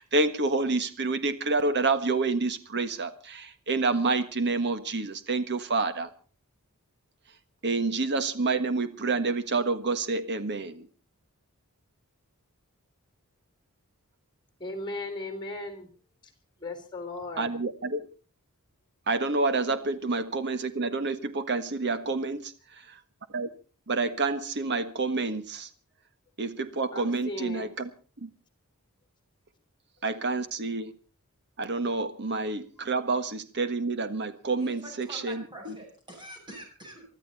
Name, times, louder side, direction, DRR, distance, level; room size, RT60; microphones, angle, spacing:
voice 1, 0.0-6.1 7.6-10.8 17.4-18.0 19.1-22.4 23.3-23.5 23.9-25.7 26.4-27.9 28.2-28.3 30.0-30.9 31.6-35.7, right 3 dB, 50° right, 1.5 m, -28 dB
voice 2, 14.6-15.9 16.6-17.6 26.9-27.7, left 2 dB, 20° left, 3.8 m, -37 dB
voice 3, 34.5-37.1, right 1 dB, 20° right, 7.6 m, -45 dB
24.0 x 13.0 x 4.2 m
head